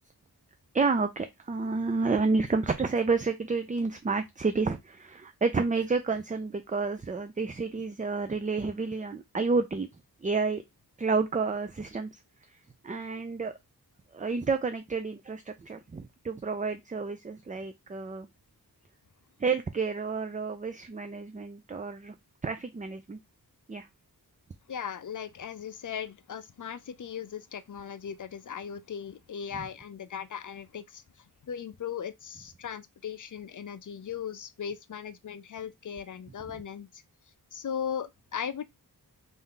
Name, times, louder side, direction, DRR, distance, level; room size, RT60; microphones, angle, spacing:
voice 1, 0.7-9.9 10.2-10.6 11.0-12.2 12.5-13.5 14.1-18.3 19.4-22.1 22.4-23.2 23.7-23.9, right 4 dB, 20° right, 0.4 m, -30 dB
voice 2, 24.7-31.0 31.4-37.0 37.5-38.6, left 8 dB, 50° left, 0.5 m, -38 dB
3.4 x 2.7 x 3.7 m
wide cardioid pair, 65°, 39 cm